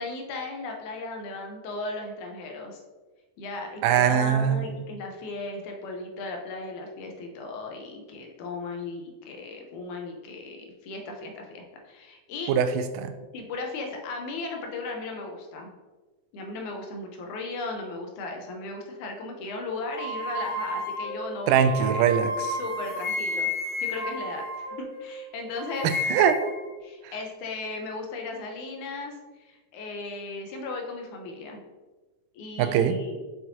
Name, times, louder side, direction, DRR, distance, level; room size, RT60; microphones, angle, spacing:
voice 1, 0.0-2.8 3.4-12.5 13.3-15.7 16.3-21.9 22.6-23.5 23.8-25.9 26.8-31.6 32.3-33.2, left 3 dB, 75° left, 2 dB, 2.2 m, -36 dB
voice 2, 3.8-4.8 12.5-13.1 21.5-22.6 25.8-26.4 27.0-27.1 32.6-33.0, right 8 dB, 90° right, 10 dB, 2.1 m, -22 dB
sound 1, 20.0-25.2 25.6-26.6, left 1 dB, 45° left, 2.4 m, -32 dB
6.0 x 6.0 x 2.7 m, 1.2 s
omnidirectional pair, 3.6 m